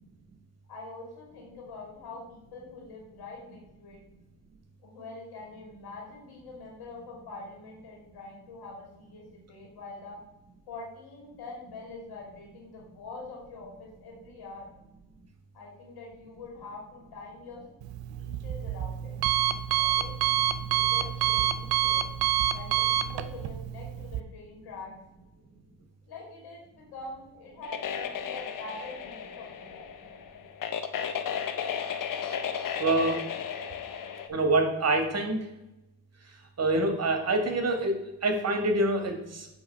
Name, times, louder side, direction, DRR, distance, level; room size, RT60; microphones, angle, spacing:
voice 1, 0.7-4.0 4.8-10.2 10.7-14.7 15.5-17.6 18.2-19.2 19.8-22.1 22.5-24.9 26.1-29.9, left 3 dB, 90° left, -1 dB, 2.6 m, -45 dB
Alarm, 17.8-24.2, right 10 dB, 85° right, 0.5 m, -27 dB
sound 1, 27.6-34.3, left 8 dB, 60° left, 0.7 m, -34 dB
voice 2, 32.8-33.2 34.3-35.5 36.6-39.5, right 2 dB, 40° right, 5 dB, 1.4 m, -26 dB
8.5 x 3.1 x 5.4 m, 0.93 s
cardioid pair, 90°, 38 cm